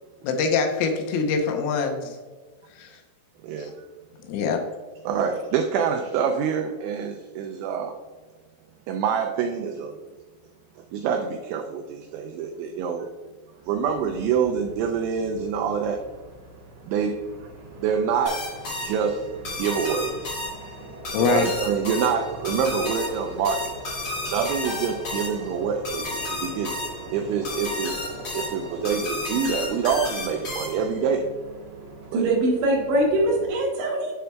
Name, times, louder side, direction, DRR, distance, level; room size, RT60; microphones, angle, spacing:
voice 1, 0.2-2.2 2.8-3.0 3.6-3.7 4.3-4.6 21.1-21.5, left 5 dB, 80° left, 3 dB, 3.3 m, -24 dB
voice 2, 5.1-7.9 8.9-9.9 10.9-13.1 13.6-16.0 16.8-17.2 17.4-17.5 17.8-18.4 18.8-20.4 21.2-23.8 24.2-26.7 27.1-27.9 28.3-31.3 32.1-32.3, right 6 dB, 90° right, 3 dB, 2.6 m, -26 dB
Aircraft, 13.6-33.5, equal, 55° right, 3.4 m, -41 dB
sound 1, 18.2-31.0, left 2 dB, 50° left, 1.9 m, -33 dB
voice 3, 32.1-34.1, right 1 dB, 70° right, -2 dB, 3.1 m, -22 dB
8.1 x 7.5 x 2.2 m, 1.4 s
omnidirectional pair, 6.0 m